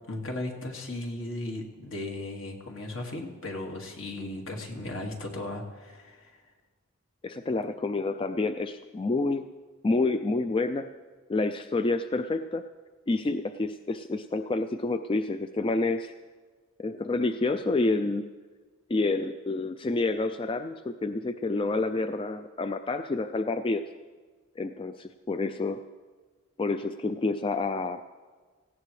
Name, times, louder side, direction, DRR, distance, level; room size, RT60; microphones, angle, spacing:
voice 1, 0.1-6.4, left 2 dB, 65° left, 1 dB, 2.1 m, -36 dB
voice 2, 7.2-9.5 9.8-10.9 11.3-12.6 13.1-16.1 16.8-18.3 18.9-23.8 24.6-25.8 26.6-28.0, left 3 dB, 25° left, 9 dB, 0.3 m, -28 dB
18.0 x 15.5 x 3.2 m, 1.4 s
head